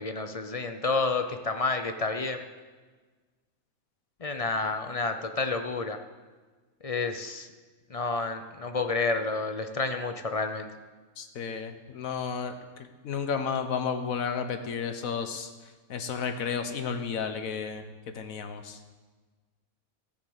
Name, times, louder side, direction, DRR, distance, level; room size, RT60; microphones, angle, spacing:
voice 1, 0.0-2.4 4.2-6.0 6.8-7.5 7.9-10.7, left 3 dB, 35° left, 7 dB, 0.6 m, -30 dB
voice 2, 11.2-15.5 15.9-17.8 18.1-18.8, left 6 dB, 80° left, 8 dB, 1.4 m, -32 dB
14.0 x 6.6 x 7.9 m, 1.4 s
omnidirectional pair, 1.4 m